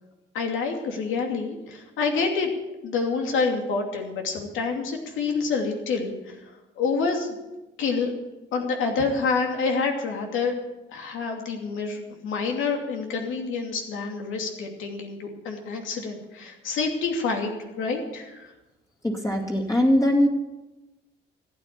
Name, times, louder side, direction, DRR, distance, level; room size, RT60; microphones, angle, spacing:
voice 1, 0.3-2.5 2.8-6.3 6.8-7.3 7.8-8.1 8.5-10.5 10.9-17.5 17.8-18.5, left 4 dB, 85° left, 2 dB, 2.7 m, -27 dB
voice 2, 19.0-20.3, left 1 dB, 15° left, -1 dB, 2.5 m, -21 dB
14.5 x 9.0 x 8.4 m, 1.0 s
cardioid pair, 90°, 20 cm